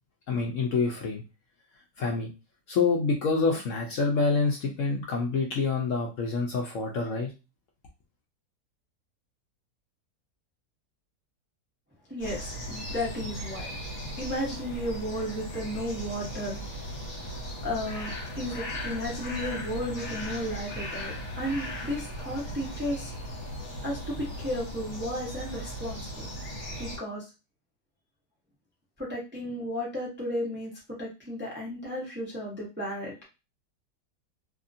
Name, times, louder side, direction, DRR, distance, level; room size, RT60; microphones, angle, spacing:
voice 1, 0.3-1.2 2.0-2.3 2.7-7.3, left 4 dB, 65° left, 0 dB, 0.8 m, -27 dB
voice 2, 12.1-13.7 14.2-23.1 23.8-26.2 26.8-27.3 29.0-30.7 31.0-33.1, equal, 15° right, -4 dB, 0.5 m, -34 dB
sound 1, 12.2-27.0, equal, 50° left, 1.3 m, -37 dB
2.8 x 2.5 x 2.6 m, 0.29 s
omnidirectional pair, 1.7 m